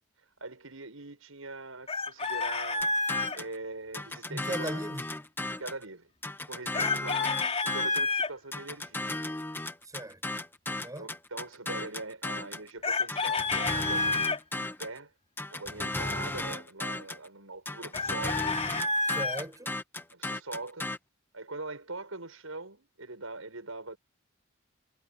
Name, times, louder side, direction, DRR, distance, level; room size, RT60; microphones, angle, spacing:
voice 1, 0.4-2.9 3.3-4.8 5.6-6.1 6.5-7.2 7.6-9.1 11.0-15.1 15.5-18.5 20.1-20.9 21.3-24.0, right 3 dB, 85° right, 6.8 m, -42 dB
Chicken rooster, 1.9-3.4 6.7-8.3 12.8-14.4 17.9-19.4, left 3 dB, 30° left, 3.7 m, -29 dB
sound 1, 2.8-3.6 3.9-5.8 6.2-8.1 8.5-12.7 13.1-15.0 15.4-17.3 17.7-21.0, left 2 dB, 10° left, 1.2 m, -35 dB
voice 2, 4.3-5.1 9.8-10.2 10.7-11.1 19.1-19.8, right 1 dB, 15° right, 6.5 m, -38 dB
head